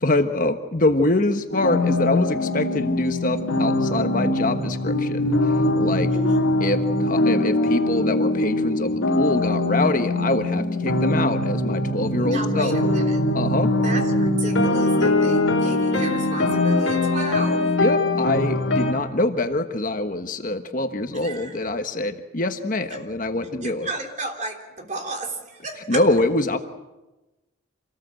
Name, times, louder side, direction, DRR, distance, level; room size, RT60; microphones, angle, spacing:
voice 1, 0.0-5.5 5.8-6.1 6.6-12.8 13.3-13.7 17.8-23.9 25.9-26.6, left 2 dB, 40° left, 7 dB, 1.2 m, -24 dB
sound 1, 1.5-18.9, left 1 dB, 80° left, 3.5 m, -22 dB
voice 2, 6.1-6.5 12.2-13.2 13.8-17.7 21.2-21.6 22.9-23.0 23.6-26.0, right 2 dB, 35° right, 3 dB, 3.4 m, -32 dB
26.5 x 19.0 x 7.8 m, 1.1 s
head